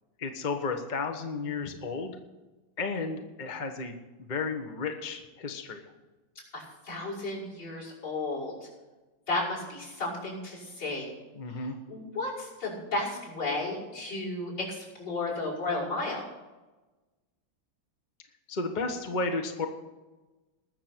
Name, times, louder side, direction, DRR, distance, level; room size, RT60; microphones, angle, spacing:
voice 1, 0.2-2.2 2.8-3.9 4.3-5.8 11.4-11.7 18.5-19.7, left 4 dB, 30° left, 5 dB, 0.9 m, -33 dB
voice 2, 6.5-8.5 9.3-11.1 11.6-16.2, left 2 dB, 65° left, -4 dB, 6.4 m, -33 dB
20.0 x 6.8 x 6.1 m, 1.2 s
omnidirectional pair, 2.1 m